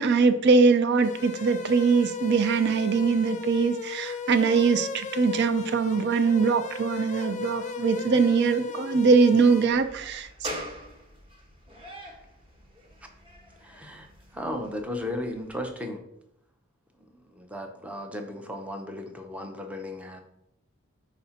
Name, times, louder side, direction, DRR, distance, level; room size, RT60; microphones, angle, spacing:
voice 1, 0.0-10.3, right 4 dB, 50° right, 11 dB, 0.4 m, -22 dB
sound 1, 1.0-9.7, left 5 dB, 35° left, 0.4 m, -36 dB
sound 2, 9.7-15.7, equal, 25° right, 1.3 m, -43 dB
voice 2, 13.6-16.1 17.0-20.2, left 1 dB, 5° right, 4 dB, 0.7 m, -36 dB
5.0 x 4.2 x 5.6 m, 0.80 s
head